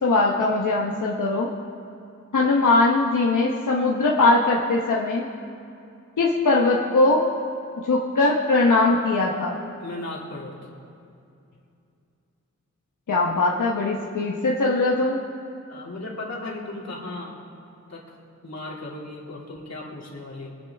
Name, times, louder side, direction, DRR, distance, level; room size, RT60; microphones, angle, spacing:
voice 1, 0.0-1.5 2.3-5.3 6.2-7.3 7.8-9.6 13.1-15.2, left 2 dB, 85° left, -3 dB, 1.2 m, -21 dB
voice 2, 9.8-10.6 15.7-17.4 17.9-18.2 18.4-20.5, left 2 dB, 60° left, -3 dB, 2.8 m, -36 dB
23.0 x 10.5 x 3.6 m, 2.6 s
wide cardioid pair, 105°, 30 cm